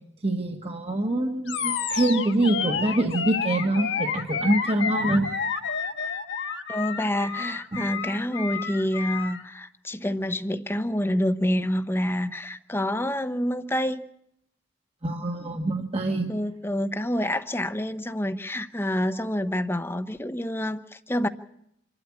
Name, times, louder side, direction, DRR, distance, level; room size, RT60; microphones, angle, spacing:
voice 1, 0.2-5.3 7.7-7.8 15.0-16.3, right 1 dB, 30° right, 3 dB, 1.5 m, -25 dB
Animal, 1.5-9.4, left 6 dB, 75° left, 1.6 m, -30 dB
voice 2, 6.7-14.0 16.3-21.3, equal, 15° left, 10 dB, 0.8 m, -27 dB
26.5 x 12.5 x 8.6 m, 0.76 s
head